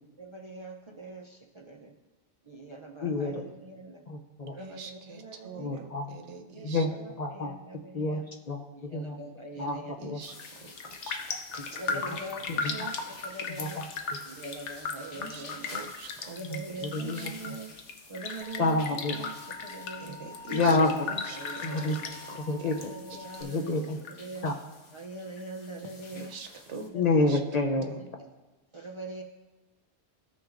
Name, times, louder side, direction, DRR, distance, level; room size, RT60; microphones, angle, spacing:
voice 1, 0.2-1.9 2.5-4.0 4.5-5.9 6.5-8.2 8.7-10.0 11.7-13.8 14.3-15.8 16.3-17.7 18.1-18.8 19.1-20.2 20.6-20.9 21.3-22.1 22.7-24.5 24.9-26.3 26.8-27.3 27.8-27.9 28.7-29.2, right 2 dB, 45° right, 1 dB, 0.4 m, -43 dB
voice 2, 3.0-3.5 4.1-4.6 5.6-6.2 6.6-6.9 7.2-7.5 7.9-9.2 9.5-10.2 11.9-12.2 12.5-12.9 13.6-13.8 14.1-14.2 16.4-17.5 18.6-19.3 20.5-21.1 21.6-22.0 22.4-22.9 23.4-24.0 24.4-24.6 26.9-27.9, left 2 dB, 50° left, 4 dB, 0.5 m, -29 dB
voice 3, 4.6-6.8 9.6-10.3 10.6-11.2 12.6-12.7 15.1-15.5 15.7-16.4 17.2-17.3 20.0-20.8 21.1-21.6 22.6-22.7 26.1-26.9 27.3-27.4, right 4 dB, 85° right, 6 dB, 1.1 m, -44 dB
sound 1, 10.2-26.9, left 3 dB, 65° left, 1.2 m, -51 dB
Raindrop, 10.3-10.5 10.8-22.9 23.1-24.1 24.5-24.6, left 4 dB, 90° left, 1.1 m, -37 dB
sound 2, 18.4-23.4, left 3 dB, 15° right, 1.4 m, -47 dB
14.5 x 6.1 x 2.5 m, 1.2 s
omnidirectional pair, 1.2 m